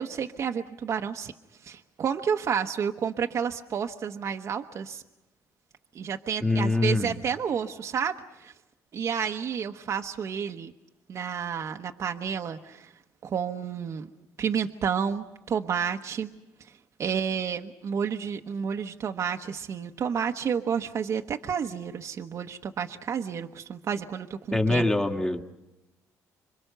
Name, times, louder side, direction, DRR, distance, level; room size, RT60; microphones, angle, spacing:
voice 1, 0.0-1.3 1.6-5.0 5.9-8.1 8.4-8.5 8.9-10.7 11.1-12.9 13.2-14.1 14.4-16.3 17.0-24.9, right 7 dB, 50° right, 4 dB, 1.1 m, -30 dB
voice 2, 6.4-7.2 24.5-25.4, left 2 dB, 10° left, 5 dB, 1.9 m, -24 dB
26.5 x 24.0 x 6.8 m, 0.97 s
cardioid pair, 95°, 6 cm